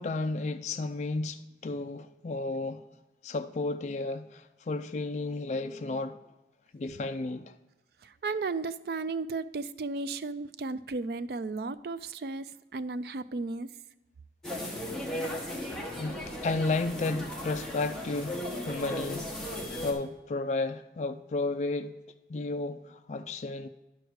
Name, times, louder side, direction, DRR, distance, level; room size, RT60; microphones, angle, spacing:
voice 1, 0.0-2.8 3.2-6.2 6.7-7.5 16.0-19.3 19.8-21.9 22.3-23.7, left 3 dB, 40° left, 0.3 m, -33 dB
voice 2, 8.0-13.7 16.1-16.4, right 3 dB, 60° right, 0.4 m, -34 dB
sound 1, 14.4-19.9, left 1 dB, 5° left, 1.3 m, -36 dB
10.5 x 6.4 x 4.7 m
head